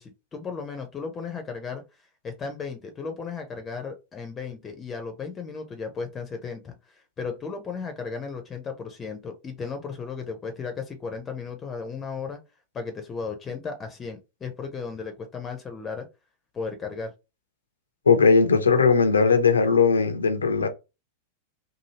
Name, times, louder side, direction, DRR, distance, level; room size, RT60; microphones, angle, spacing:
voice 1, 0.0-1.8 2.2-12.4 12.7-16.1 16.5-17.1, left 5 dB, 20° left, 0.6 m, -35 dB
voice 2, 18.1-20.7, left 5 dB, 75° left, 0.5 m, -19 dB
2.7 x 2.6 x 2.8 m
figure-of-eight pair, 90°, 0 cm